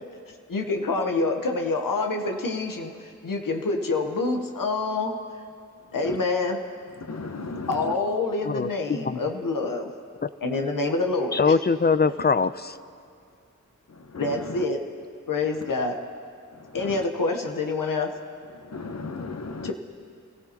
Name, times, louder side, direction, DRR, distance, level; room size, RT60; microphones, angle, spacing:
voice 1, 0.5-5.2 5.9-6.6 7.7-9.9 10.4-11.5 14.1-14.8 15.3-16.0 16.7-18.1 19.6-19.7, left 3 dB, 90° left, 3 dB, 1.0 m, -27 dB
voice 2, 7.1-7.7 14.1-14.6 16.8-17.0 18.7-19.7, left 3 dB, 55° left, 8 dB, 1.0 m, -35 dB
voice 3, 8.4-9.2 10.2-10.3 11.3-12.8, left 4 dB, 30° left, 14 dB, 0.5 m, -23 dB
28.0 x 15.5 x 2.9 m, 2.3 s
cardioid pair, 40°, 32 cm